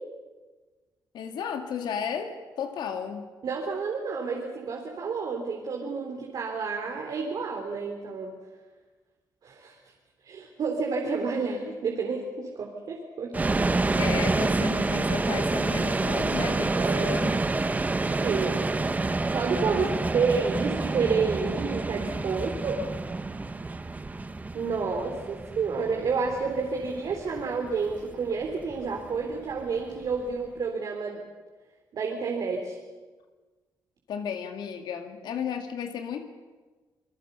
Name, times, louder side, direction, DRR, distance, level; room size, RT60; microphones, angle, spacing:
voice 1, 1.1-3.3 14.0-17.3 19.7-19.9 34.1-36.3, left 7 dB, 85° left, 5 dB, 2.2 m, -34 dB
voice 2, 3.4-8.4 9.4-9.8 10.2-13.3 16.7-17.1 18.2-18.6 19.3-22.8 24.5-31.2 31.9-32.8, right 5 dB, 60° right, 0 dB, 3.7 m, -30 dB
sound 1, 13.3-30.3, right 3 dB, 20° right, 1.2 m, -28 dB
27.5 x 20.5 x 7.0 m, 1.3 s
cardioid pair, 110°, 7 cm